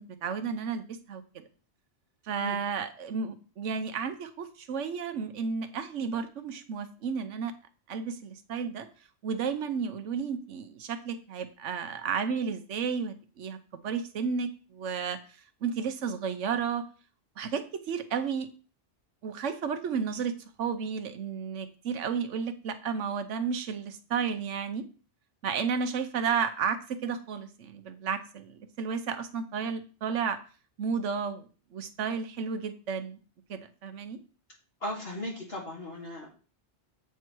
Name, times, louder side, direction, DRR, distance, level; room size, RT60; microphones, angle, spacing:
voice 1, 0.0-1.4 2.2-7.5 7.9-8.9 9.2-13.6 13.8-15.2 15.6-16.8 17.4-18.5 19.2-20.3 20.6-24.8 25.4-30.4 30.8-31.5 31.7-33.2 33.5-34.2, right 6 dB, 85° right, 9 dB, 1.2 m, -32 dB
voice 2, 34.8-36.3, left 1 dB, 55° left, -2 dB, 2.1 m, -37 dB
8.4 x 4.6 x 4.6 m, 0.37 s
omnidirectional pair, 1.2 m